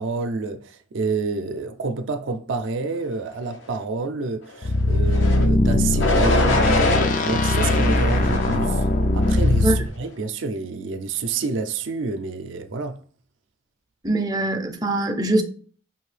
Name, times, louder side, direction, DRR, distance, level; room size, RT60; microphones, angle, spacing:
voice 1, 0.0-8.9 9.1-13.0, right 4 dB, 70° right, 0.5 m, -28 dB
sound 1, 4.6-9.9, left 2 dB, 40° left, 0.4 m, -20 dB
sound 2, 5.1-5.5 6.0-7.1 7.6-8.7 9.2-9.7, left 2 dB, 70° left, 0.8 m, -24 dB
voice 2, 14.0-15.4, right 1 dB, 20° right, 0.5 m, -22 dB
5.4 x 2.7 x 3.2 m
head